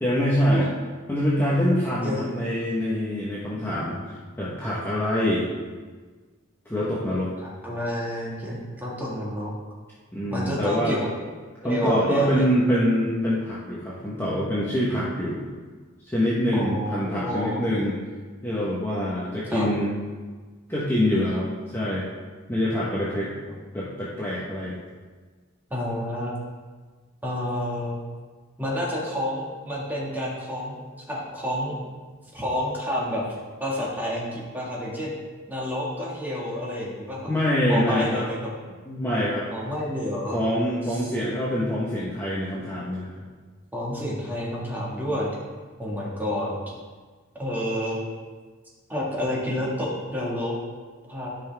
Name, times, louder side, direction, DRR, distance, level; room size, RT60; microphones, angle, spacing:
voice 1, 0.0-0.7 1.1-5.4 6.7-7.3 10.1-11.0 11.6-15.4 16.1-18.0 18.4-19.9 20.7-22.1 22.5-23.3 23.7-24.8 37.3-38.3 38.8-39.5 40.3-43.2, equal, 10° left, -8 dB, 1.1 m, -25 dB
voice 2, 2.0-2.3 7.6-9.5 10.3-11.1 11.6-12.5 16.5-17.6 19.5-19.7 25.7-26.3 27.2-28.0 28.6-30.8 31.1-31.8 32.3-33.2 33.6-35.1 35.5-37.3 37.7-38.5 39.5-40.4 40.9-41.1 43.7-45.3 45.8-46.5 47.4-48.1 48.9-50.6 51.1-51.3, left 1 dB, 10° right, -5 dB, 1.8 m, -29 dB
12.5 x 5.4 x 3.4 m, 1.4 s
head